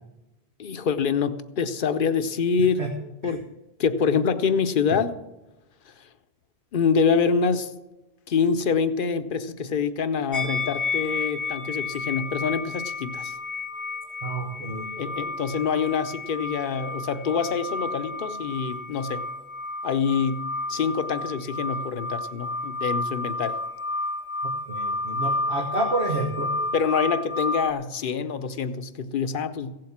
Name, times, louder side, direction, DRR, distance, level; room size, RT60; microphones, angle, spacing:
voice 1, 0.6-2.9 3.2-3.5 3.8-5.2 5.9-6.1 6.7-7.7 8.3-13.3 15.0-19.2 19.8-23.6 26.7-29.7, left 6 dB, 55° left, 11 dB, 0.9 m, -25 dB
sound 1, 10.3-27.7, left 2 dB, 35° left, 0.7 m, -31 dB
voice 2, 14.2-14.9 24.7-26.5, right 2 dB, 85° right, 1 dB, 1.7 m, -29 dB
16.5 x 7.8 x 7.3 m, 1.0 s
omnidirectional pair, 1.1 m